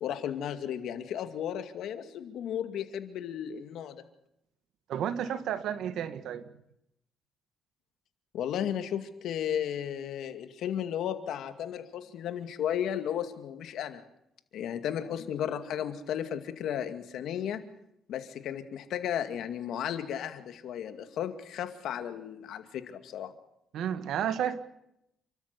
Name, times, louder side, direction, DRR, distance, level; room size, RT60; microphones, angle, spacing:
voice 1, 0.0-4.0 8.3-14.0 14.5-17.6 18.1-23.3, left 9 dB, 80° left, 8 dB, 2.2 m, -34 dB
voice 2, 4.9-6.4 23.7-24.6, right 9 dB, 80° right, 11 dB, 1.6 m, -31 dB
29.0 x 13.5 x 8.4 m, 0.80 s
cardioid pair, 90°, 0 cm